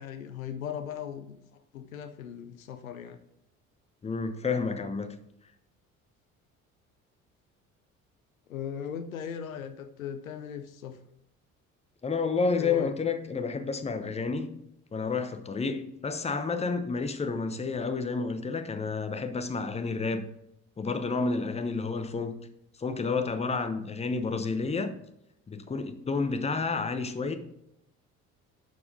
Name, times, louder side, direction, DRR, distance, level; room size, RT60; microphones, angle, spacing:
voice 1, 0.0-3.2 8.5-11.0 12.5-12.9, left 8 dB, 80° left, 0.7 m, -38 dB
voice 2, 4.0-5.1 12.0-14.5 14.9-20.2 20.8-22.4 22.8-24.9 25.5-27.4, left 4 dB, 15° left, 0.9 m, -30 dB
11.5 x 4.7 x 3.8 m
figure-of-eight pair, 55°, 41 cm